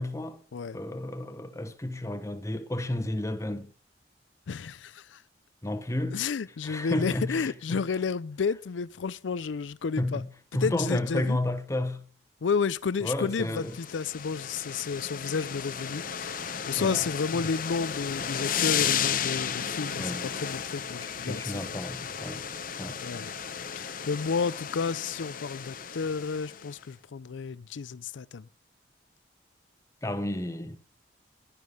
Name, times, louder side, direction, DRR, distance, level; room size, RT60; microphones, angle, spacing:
voice 1, 0.0-0.4 0.7-3.7 5.6-6.3 6.6-7.8 10.0-12.1 13.0-13.7 16.8-17.1 17.3-17.4 20.0-20.3 21.3-22.4 22.8-23.0 30.0-30.8, left 1 dB, 15° left, 1.0 m, -32 dB
voice 2, 4.5-5.2 6.1-10.2 10.6-11.4 12.4-21.7 23.0-23.3 23.8-28.4, left 5 dB, 90° left, 0.5 m, -31 dB
sound 1, 13.5-26.7, left 8 dB, 50° left, 0.8 m, -34 dB
11.5 x 10.5 x 4.9 m
head